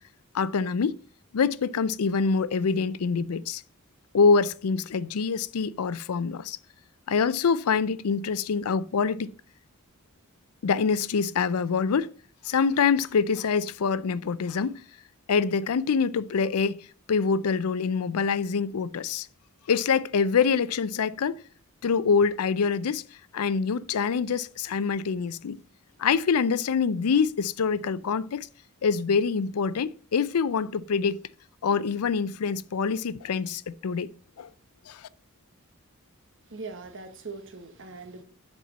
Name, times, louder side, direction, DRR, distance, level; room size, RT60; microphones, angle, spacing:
voice 1, 0.3-1.0 1.3-3.6 4.1-6.6 7.1-9.3 10.6-12.1 12.4-14.8 15.3-16.8 17.1-19.3 19.7-21.4 21.8-23.0 23.3-25.6 26.0-28.5 28.8-31.2 31.6-34.1 34.4-34.5 34.9-35.1, left 5 dB, 90° left, 0.5 m, -25 dB
voice 2, 36.4-38.2, right 4 dB, 60° right, 1.2 m, -41 dB
7.3 x 4.4 x 6.8 m
head